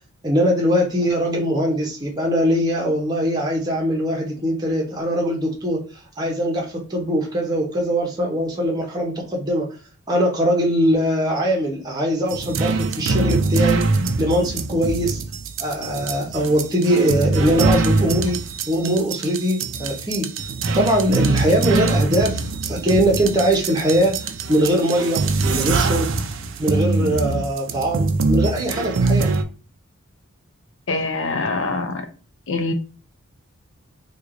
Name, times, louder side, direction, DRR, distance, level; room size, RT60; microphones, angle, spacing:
voice 1, 0.2-5.8 6.2-9.7 10.1-15.2 15.6-20.3 20.6-26.1 26.6-29.3, equal, 20° right, -1 dB, 0.8 m, -21 dB
sound 1, 12.3-29.4, right 3 dB, 60° right, 0.4 m, -23 dB
voice 2, 30.9-32.1 32.5-32.7, left 3 dB, 60° left, 7 dB, 0.6 m, -24 dB
3.1 x 2.3 x 3.7 m, 0.36 s
head